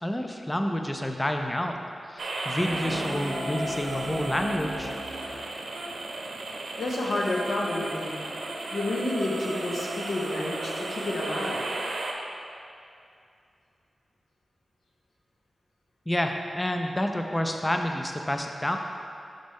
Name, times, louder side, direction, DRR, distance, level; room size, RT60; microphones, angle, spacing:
voice 1, 0.0-5.0 16.1-18.8, left 1 dB, 15° left, 4 dB, 0.4 m, -29 dB
sound 1, 2.2-12.1, right 2 dB, 75° right, 0.7 m, -34 dB
sound 2, 2.6-7.7, left 1 dB, 40° left, 1.2 m, -38 dB
voice 2, 6.8-8.2 8.7-11.6, left 2 dB, 85° left, -2 dB, 0.9 m, -30 dB
6.5 x 5.1 x 3.5 m, 2.4 s
wide cardioid pair, 90°, 0 cm